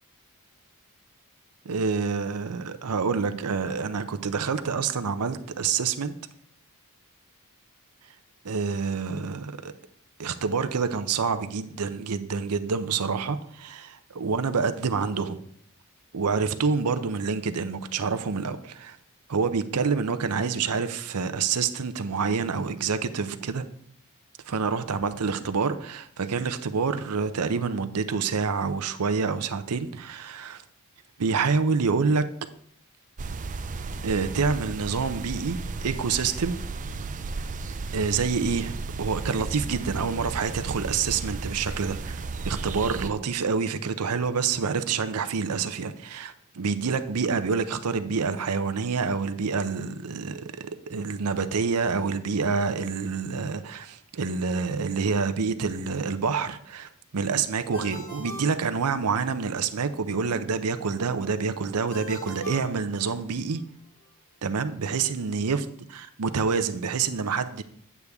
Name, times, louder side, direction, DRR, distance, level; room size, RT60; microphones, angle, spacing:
voice 1, 1.6-6.1 8.4-9.7 10.2-15.4 16.1-19.0 19.3-23.6 24.5-30.6 31.2-32.3 34.0-36.6 37.9-63.6 64.4-65.6 66.2-67.6, right 5 dB, 85° right, 10 dB, 0.6 m, -27 dB
sound 1, 33.2-43.1, right 3 dB, 35° right, 0.4 m, -34 dB
Ringtone, 57.7-59.4 61.9-63.6, left 1 dB, 40° left, 2.4 m, -42 dB
8.4 x 8.1 x 3.5 m, 0.65 s
head